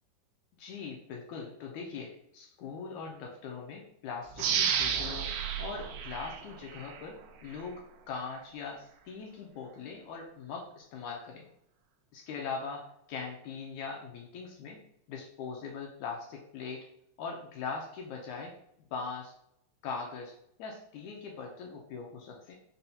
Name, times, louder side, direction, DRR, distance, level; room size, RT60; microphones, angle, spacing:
voice 1, 0.6-5.3 5.6-7.8 8.1-11.4 12.1-14.8 15.1-16.8 17.2-18.5 18.9-19.3 19.8-22.5, left 5 dB, 80° left, 0 dB, 1.7 m, -41 dB
sound 1, 4.4-7.0 7.5-7.6, right 7 dB, 85° right, 1.7 m, -32 dB
5.5 x 2.3 x 2.7 m, 0.74 s
omnidirectional pair, 3.7 m